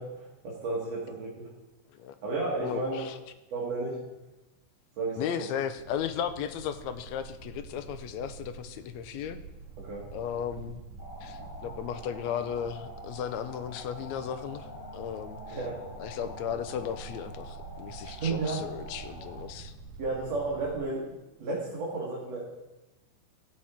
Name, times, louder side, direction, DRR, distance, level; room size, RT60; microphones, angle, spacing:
voice 1, 0.0-1.5 2.2-3.0 3.5-4.0 5.0-5.3 9.8-10.0 15.5-15.8 18.0-18.6 20.0-22.4, right 3 dB, 60° right, -5 dB, 2.9 m, -33 dB
voice 2, 2.5-3.2 5.2-9.4 10.1-10.8 11.2-15.6 16.0-19.7, left 9 dB, 80° left, 10 dB, 1.7 m, -35 dB
sound 1, 5.8-20.8, right 4 dB, 75° right, 2.5 m, -47 dB
sound 2, 11.0-19.4, left 1 dB, 35° left, 2.3 m, -46 dB
14.0 x 7.8 x 4.4 m, 1.0 s
omnidirectional pair, 3.6 m